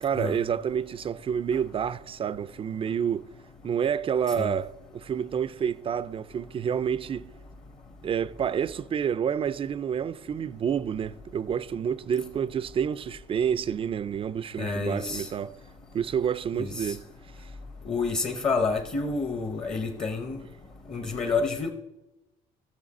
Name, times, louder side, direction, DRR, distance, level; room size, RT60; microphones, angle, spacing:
voice 1, 0.0-3.3 3.6-7.3 8.0-15.5 15.9-17.0, right 8 dB, 35° right, 0.4 m, -29 dB
voice 2, 14.6-15.3 16.5-16.9 17.9-20.4 20.9-21.7, left 4 dB, 30° left, 0.8 m, -29 dB
14.0 x 6.6 x 4.1 m
cardioid pair, 110°, 17 cm